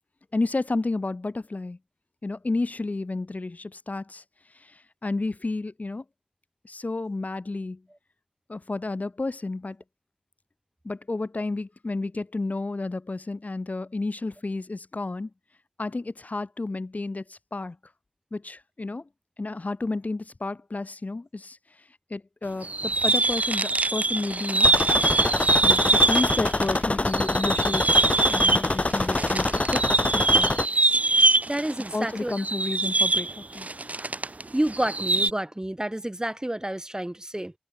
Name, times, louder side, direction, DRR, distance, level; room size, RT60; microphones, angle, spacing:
voice 1, 0.3-1.8 2.2-4.2 4.6-6.0 6.6-7.8 8.5-9.8 10.8-15.3 15.8-17.8 18.3-19.1 19.4-21.6 22.1-24.8 25.6-28.0 28.3-29.9 30.1-30.6 31.9-33.7, left 3 dB, 90° left, 3.1 m, -31 dB
sound 1, 22.6-26.8 27.0-34.4 34.7-35.3, right 2 dB, 70° right, 1.0 m, -23 dB
sound 2, 24.6-30.7, left 2 dB, 55° left, 0.9 m, -25 dB
voice 2, 31.5-32.3 34.5-37.5, right 1 dB, 25° right, 3.7 m, -29 dB
wide cardioid pair, 45°, 3 cm